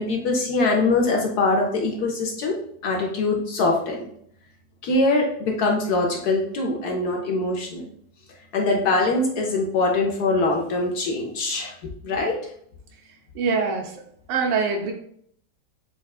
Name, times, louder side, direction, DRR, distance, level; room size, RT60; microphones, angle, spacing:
voice 1, 0.0-4.0 4.8-7.8 8.5-12.4, left 2 dB, 65° left, 0 dB, 1.1 m, -23 dB
voice 2, 13.4-13.9 14.3-14.9, right 5 dB, 80° right, 2 dB, 1.3 m, -23 dB
5.9 x 2.2 x 2.3 m, 0.66 s
omnidirectional pair, 2.0 m